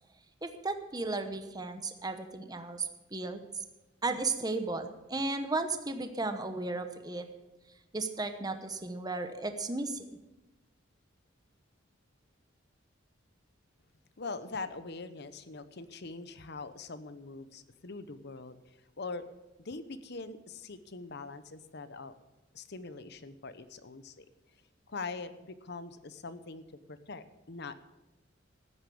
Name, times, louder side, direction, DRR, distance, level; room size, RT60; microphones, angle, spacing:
voice 1, 0.4-3.4 4.0-7.3 7.9-10.1, right 3 dB, 20° right, 7 dB, 1.0 m, -34 dB
voice 2, 14.2-19.2 19.6-22.1 22.5-24.3 24.9-26.6 26.9-27.7, left 3 dB, 55° left, 13 dB, 0.9 m, -43 dB
13.5 x 9.6 x 7.1 m, 1.0 s
head